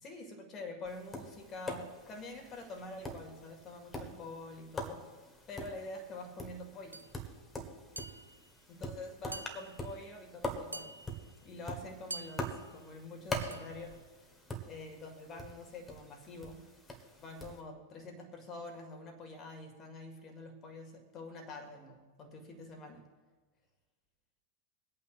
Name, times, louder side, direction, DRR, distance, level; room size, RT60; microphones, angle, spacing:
voice 1, 0.0-5.1 5.5-7.1 8.7-11.0 11.4-14.1 14.7-16.7 17.2-23.1, left 2 dB, 30° left, 5 dB, 1.9 m, -46 dB
Tap, 0.9-17.6, left 1 dB, 15° left, 1.5 m, -44 dB
sound 1, 6.9-7.1 8.0-8.5 9.3-10.0 10.7-11.4 12.1-12.7 13.5-13.9, right 2 dB, 80° right, 0.3 m, -46 dB
sound 2, 13.4-14.4, right 1 dB, 85° left, 1.1 m, -53 dB
25.0 x 8.7 x 2.5 m, 1.4 s
figure-of-eight pair, 90°, 0 cm